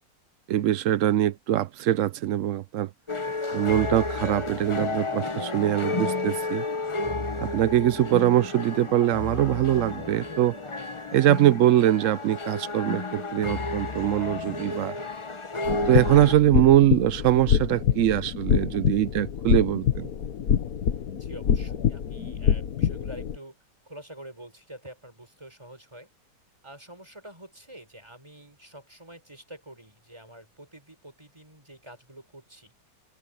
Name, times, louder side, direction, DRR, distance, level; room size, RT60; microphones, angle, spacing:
voice 1, 0.5-2.9 3.5-6.6 7.4-10.6 11.1-14.9 15.7-20.1, right 13 dB, 80° right, 0.7 m, -22 dB
sound 1, 3.1-16.3, left 3 dB, 30° left, 0.5 m, -32 dB
sound 2, 15.7-23.4, left 8 dB, 60° left, 1.5 m, -26 dB
voice 2, 21.2-23.6 23.8-26.1 26.6-32.7, right 1 dB, 15° right, 6.0 m, -47 dB
omnidirectional pair, 2.0 m